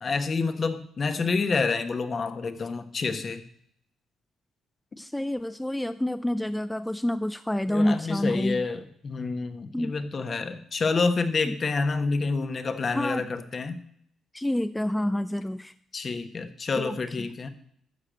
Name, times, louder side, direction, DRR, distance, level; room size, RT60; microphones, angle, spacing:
voice 1, 0.0-3.4 7.7-13.8 15.9-17.5, left 4 dB, 40° left, 1.2 m, -28 dB
voice 2, 5.0-8.7 9.7-10.0 11.5-11.6 12.9-13.3 14.3-15.7 16.8-17.3, left 1 dB, 5° left, 0.4 m, -28 dB
12.5 x 4.9 x 8.0 m
cardioid pair, 90°, 0 cm